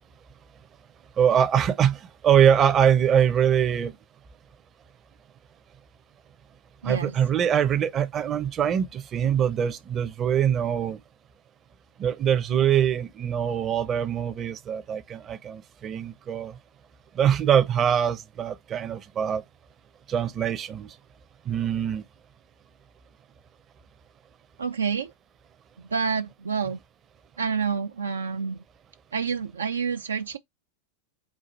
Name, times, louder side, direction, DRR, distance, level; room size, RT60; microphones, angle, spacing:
voice 1, 1.2-4.0 6.8-11.0 12.0-16.6 17.1-19.4 20.1-20.9 21.5-22.0, right 9 dB, 30° right, 0.6 m, -23 dB
voice 2, 6.8-7.2 12.5-12.6 24.6-25.1 25.8-26.8 27.4-28.6 29.1-30.4, right 6 dB, 70° right, 0.3 m, -28 dB
4.6 x 2.3 x 3.9 m
figure-of-eight pair, 90°, 0 cm